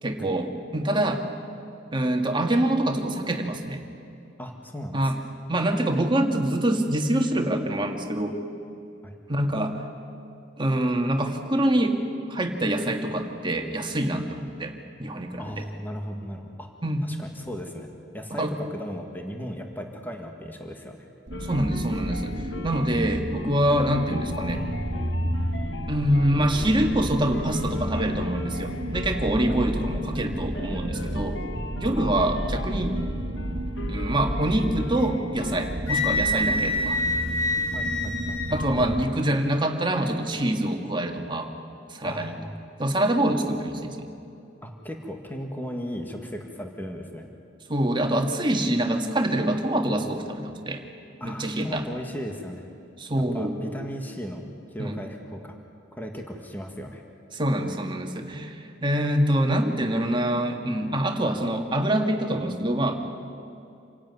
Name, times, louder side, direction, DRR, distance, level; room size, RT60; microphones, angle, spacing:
voice 1, 0.0-1.2 1.9-3.8 4.9-5.2 5.5-8.4 9.3-9.8 10.6-12.0 12.3-14.7 15.0-15.5 16.8-17.0 18.3-18.5 21.4-24.6 25.9-31.4 31.8-32.9 33.9-37.0 38.5-41.5 41.9-42.4 42.8-44.1 47.7-50.8 51.2-51.8 53.0-53.6 54.8-55.0 57.3-63.0, right 1 dB, 25° right, 3 dB, 2.0 m, -25 dB
voice 2, 4.4-5.1 9.0-9.2 15.4-16.7 17.0-17.9 18.1-21.1 29.5-29.7 37.7-38.4 42.0-42.5 44.6-47.3 51.2-52.7 53.2-55.6 55.9-57.0, equal, 10° left, 3 dB, 1.8 m, -36 dB
sound 1, 21.3-35.8, left 3 dB, 70° left, 1.5 m, -41 dB
sound 2, 21.3-39.0, right 1 dB, 65° right, 1.7 m, -32 dB
Wind instrument woodwind instrument, 35.9-38.7, left 2 dB, 90° left, 2.0 m, -26 dB
27.0 x 16.5 x 9.7 m, 2.6 s
head